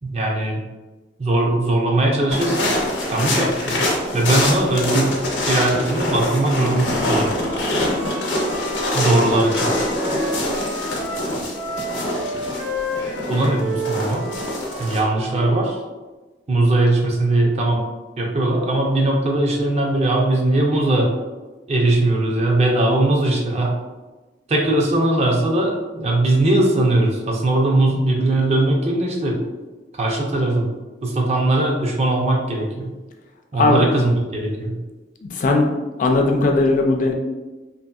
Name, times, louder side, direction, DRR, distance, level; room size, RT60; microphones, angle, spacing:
voice 1, 0.0-0.6 1.2-2.7 3.1-3.9 4.1-7.3 8.9-9.7 13.3-14.3 14.8-15.8 16.5-17.8 18.2-21.1 21.7-23.8 24.5-29.4 29.9-30.7 31.0-32.9 33.5-34.8, right 2 dB, 35° right, 0 dB, 0.5 m, -20 dB
sound 1, 2.3-15.0, left 1 dB, 85° left, 0.7 m, -24 dB
Wind instrument woodwind instrument, 7.4-15.8, right 1 dB, 55° right, 1.0 m, -30 dB
voice 2, 35.3-35.7 36.0-37.1, left 2 dB, 45° left, 2 dB, 0.3 m, -17 dB
2.8 x 2.6 x 2.3 m, 1.2 s
head